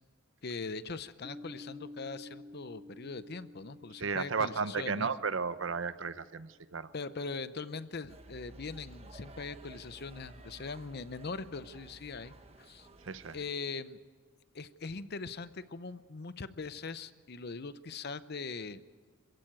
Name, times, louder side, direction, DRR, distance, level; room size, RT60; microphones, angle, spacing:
voice 1, 0.4-5.1 6.9-12.9 13.3-14.0 14.5-18.8, left 4 dB, 55° left, 14 dB, 0.8 m, -41 dB
Piano, 1.2-6.6, left 1 dB, 10° left, 1.9 m, -51 dB
voice 2, 4.0-6.9 13.0-13.4, right 5 dB, 70° right, 13 dB, 0.8 m, -34 dB
sound 1, 8.1-13.5, right 1 dB, 30° right, 1.2 m, -53 dB
26.5 x 15.5 x 8.9 m, 1.5 s
head